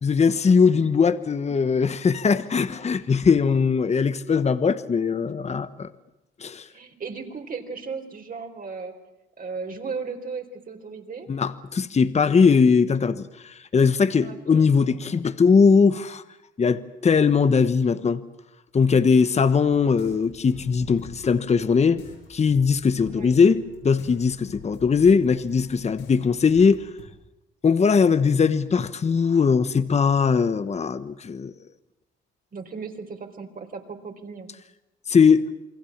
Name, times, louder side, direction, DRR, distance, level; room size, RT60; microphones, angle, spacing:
voice 1, 0.0-5.9 6.4-6.7 11.3-16.2 16.6-18.2 18.7-22.0 22.3-26.8 27.6-31.5 35.1-35.5, left 5 dB, 35° left, 1.2 m, -20 dB
voice 2, 6.7-8.9 9.4-11.3 14.1-14.7 23.1-23.4 32.5-34.5, right 5 dB, 45° right, 4.2 m, -36 dB
sound 1, 19.7-27.1, left 5 dB, 85° left, 7.3 m, -47 dB
28.5 x 22.0 x 7.4 m
cardioid pair, 90°, 20 cm